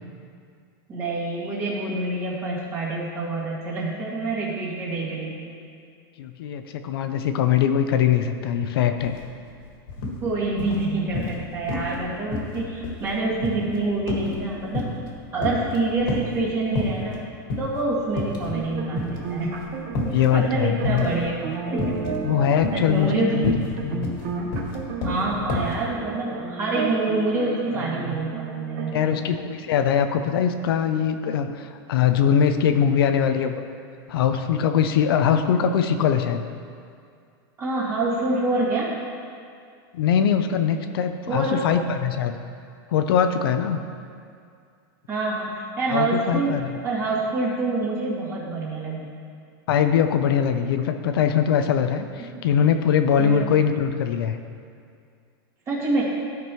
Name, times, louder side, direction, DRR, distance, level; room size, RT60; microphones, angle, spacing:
voice 1, 0.9-5.5 10.2-14.9 15.3-17.2 17.6-19.6 20.3-21.4 21.7-22.0 22.7-23.4 25.0-29.3 37.6-39.0 41.3-41.7 45.1-49.1 52.3-52.4 53.2-53.5 55.7-56.0, right 2 dB, 20° right, -6 dB, 2.0 m, -26 dB
voice 2, 6.2-9.2 20.1-21.1 22.2-24.1 28.9-33.6 34.1-36.4 39.9-42.4 42.9-43.8 45.9-46.7 49.7-54.4, left 8 dB, 80° left, 8 dB, 0.6 m, -22 dB
sound 1, 9.0-9.2 9.5-10.2 10.6-11.4 11.7-12.0 12.3-15.1 15.4-16.4 16.8-17.2 17.5-17.7 18.1-18.7 19.0-20.3 20.8-21.3 21.8-22.2 22.6-25.8, left 2 dB, 60° left, 1.7 m, -29 dB
sound 2, 18.5-28.9, right 5 dB, 45° right, 1.1 m, -33 dB
14.0 x 5.3 x 3.0 m, 2.3 s
supercardioid pair, 165°, 12 cm